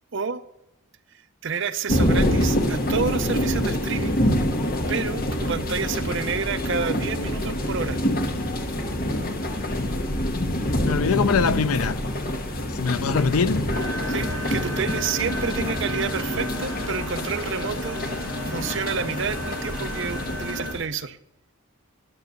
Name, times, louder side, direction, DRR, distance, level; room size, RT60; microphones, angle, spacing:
voice 1, 0.1-0.4 1.4-4.2 4.9-8.0 14.1-21.2, right 5 dB, 55° right, 0.6 m, -29 dB
sound 1, 1.9-20.9, equal, 45° left, 1.2 m, -26 dB
voice 2, 10.8-12.0 12.7-13.7, left 5 dB, 90° left, 0.5 m, -23 dB
sound 2, 13.7-20.7, equal, 70° left, 2.1 m, -34 dB
12.0 x 7.9 x 6.5 m
head